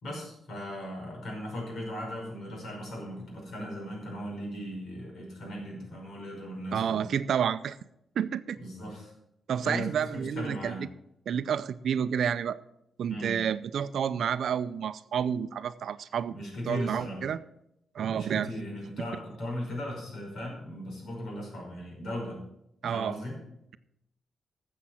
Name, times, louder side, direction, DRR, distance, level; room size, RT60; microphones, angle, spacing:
voice 1, 0.0-7.1 8.6-9.1 9.6-10.8 13.1-13.4 16.3-17.2 18.1-22.4 22.8-23.4, left 1 dB, 70° left, -1 dB, 5.5 m, -38 dB
voice 2, 6.7-7.8 8.2-8.6 9.5-10.9 11.3-12.6 13.0-16.3 16.7-17.4 17.9-18.5 22.8-23.2, right 8 dB, 70° right, 14 dB, 0.5 m, -29 dB
12.5 x 7.4 x 5.7 m, 0.81 s
cardioid pair, 120°, 0 cm